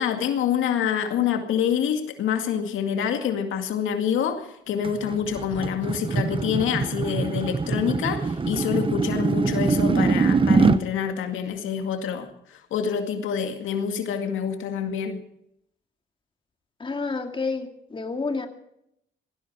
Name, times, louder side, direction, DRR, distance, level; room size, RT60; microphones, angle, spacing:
voice 1, 0.0-15.2, left 8 dB, 85° left, 6 dB, 2.1 m, -26 dB
sound 1, 4.8-10.8, right 4 dB, 25° right, 1.0 m, -23 dB
voice 2, 16.8-18.5, left 4 dB, 25° left, 5 dB, 2.3 m, -29 dB
19.0 x 16.0 x 4.8 m, 0.75 s
cardioid pair, 90°, 20 cm